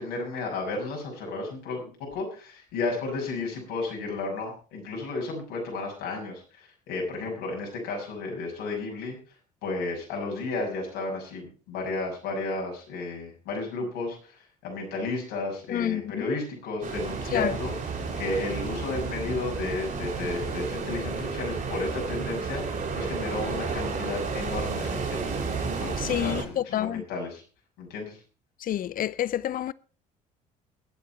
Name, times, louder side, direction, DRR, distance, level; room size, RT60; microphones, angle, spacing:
voice 1, 0.0-9.2 9.6-17.7 18.2-25.5 25.8-27.4 27.8-28.2, left 3 dB, 75° left, 6.5 m, -33 dB
voice 2, 15.7-16.2 17.3-17.5 26.0-27.0 28.6-29.7, left 12 dB, 50° left, 0.7 m, -28 dB
sound 1, 16.8-26.4, right 4 dB, 45° right, 5.8 m, -32 dB
20.5 x 8.3 x 4.4 m
hypercardioid pair, 60°, 19 cm